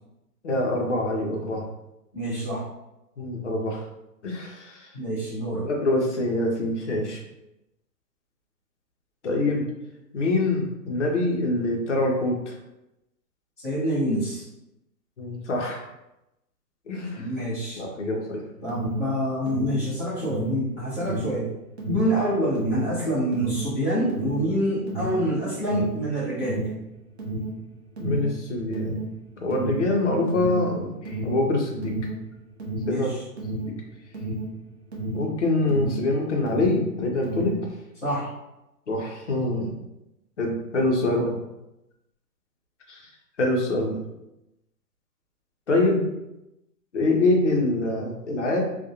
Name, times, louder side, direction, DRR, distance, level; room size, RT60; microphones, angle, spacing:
voice 1, 0.4-1.6 3.2-3.8 4.2-4.9 5.6-7.2 9.2-9.6 10.1-12.5 15.2-15.8 16.9-17.2 17.8-18.4 28.0-28.9 29.4-32.0 32.9-33.1 33.6-33.7 35.1-37.6 38.9-39.7 40.4-41.3 42.9-43.0 43.4-44.0 45.7-46.1 46.9-48.6, left 2 dB, 50° left, 0 dB, 0.5 m, -25 dB
voice 2, 2.1-2.7 4.9-5.7 13.6-14.5 17.2-17.8 18.6-21.5 21.9-26.7 32.8-33.2 38.0-38.3 41.0-41.3, equal, 10° left, -13 dB, 0.8 m, -26 dB
Alarm, 18.5-36.1 36.4-37.7, right 1 dB, 40° right, 0.6 m, -32 dB
2.4 x 2.1 x 2.7 m, 0.91 s
hypercardioid pair, 175°, 49 cm